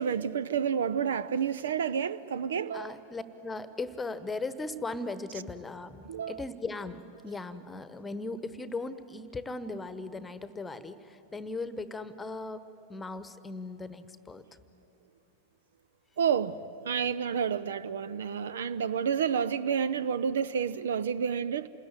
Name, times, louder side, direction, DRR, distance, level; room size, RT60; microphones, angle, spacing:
voice 1, 0.0-3.0 6.0-6.4 16.2-21.7, right 7 dB, 65° right, 0.6 m, -30 dB
voice 2, 2.7-12.6 12.9-14.4, left 3 dB, 10° left, 1.2 m, -38 dB
28.0 x 20.5 x 9.8 m
figure-of-eight pair, 90°, 0 cm